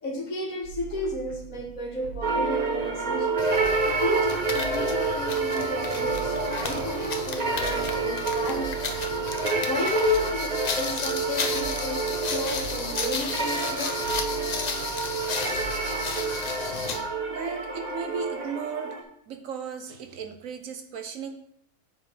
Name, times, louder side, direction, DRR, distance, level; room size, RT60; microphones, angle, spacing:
voice 1, 0.0-3.3 4.0-8.7 9.6-14.2, left 2 dB, 65° left, 1 dB, 1.7 m, -32 dB
sound 1, 0.6-18.2, right 7 dB, 20° right, 2.9 m, -43 dB
sound 2, 2.2-19.0, right 4 dB, 35° right, 0.8 m, -28 dB
sound 3, 3.4-17.1, left 5 dB, 50° left, 0.5 m, -34 dB
voice 2, 17.3-18.9 19.3-21.3, right 6 dB, 65° right, 6 dB, 1.1 m, -35 dB
7.4 x 4.6 x 4.9 m, 0.69 s
omnidirectional pair, 1.5 m